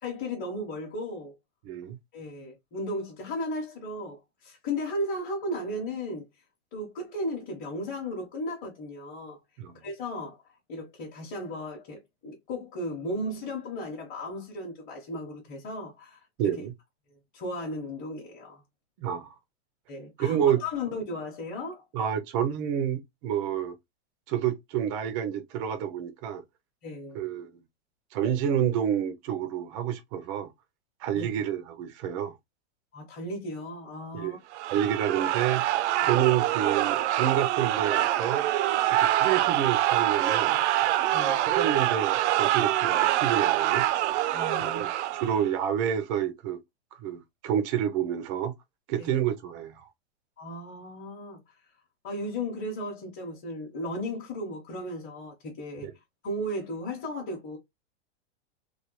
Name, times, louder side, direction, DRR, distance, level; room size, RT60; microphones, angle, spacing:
voice 1, 0.0-1.3 2.1-6.2 6.7-9.4 9.7-10.4 10.7-16.5 17.3-18.6 19.9-21.8 26.8-27.2 31.1-31.3 32.9-34.4 36.0-36.1 41.1-41.4 44.3-44.9 49.0-49.1 50.4-51.5 52.0-55.9 56.2-57.6, left 1 dB, 25° left, 0.8 m, -35 dB
voice 2, 1.6-2.0 9.6-9.7 16.4-16.7 19.0-19.3 20.2-20.6 21.9-23.7 24.3-26.4 27.1-27.6 28.1-30.5 31.0-32.3 34.1-34.4 34.7-35.6 36.0-38.4 38.9-40.6 41.4-43.9 44.6-46.6 47.0-48.5 48.9-49.8 55.8-55.9, right 9 dB, 30° right, 0.3 m, -29 dB
sound 1, 34.5-45.5, right 13 dB, 85° right, 0.5 m, -25 dB
3.2 x 2.1 x 2.9 m
supercardioid pair, 150°, 33 cm